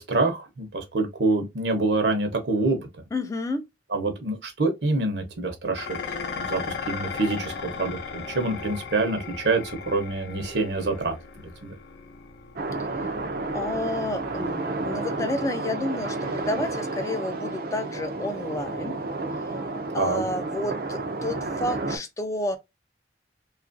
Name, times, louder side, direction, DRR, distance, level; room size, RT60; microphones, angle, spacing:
voice 1, 0.0-2.8 3.9-6.0 6.4-11.2 11.6-11.7 20.0-20.2, right 3 dB, 70° right, 0.8 m, -26 dB
voice 2, 3.1-3.7 13.5-19.0 19.4-19.5 19.9-22.6, left 2 dB, 20° left, 0.3 m, -30 dB
Dishes pots and pans, 5.7-14.6, left 5 dB, 70° left, 0.6 m, -37 dB
sound 1, 12.6-22.0, right 3 dB, 55° right, 0.4 m, -31 dB
2.8 x 2.4 x 2.5 m
head